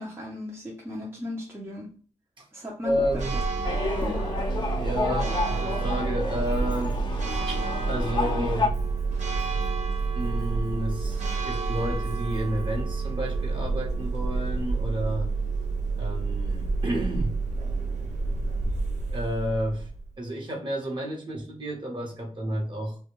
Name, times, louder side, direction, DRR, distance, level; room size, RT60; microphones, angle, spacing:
voice 1, 0.0-1.9 2.5-3.4 3.8-4.2, left 1 dB, 20° right, -3 dB, 0.6 m, -36 dB
voice 2, 2.8-3.4 4.8-7.0 7.5-8.7 10.1-15.3 16.0-17.3 19.1-19.9 20.2-23.0, equal, 40° right, 0 dB, 1.0 m, -31 dB
Church bell, 2.9-20.1, right 4 dB, 85° right, 0.6 m, -29 dB
sound 1, 3.6-8.7, left 4 dB, 40° left, 0.5 m, -31 dB
2.3 x 2.2 x 2.9 m, 0.43 s
wide cardioid pair, 90°, 12 cm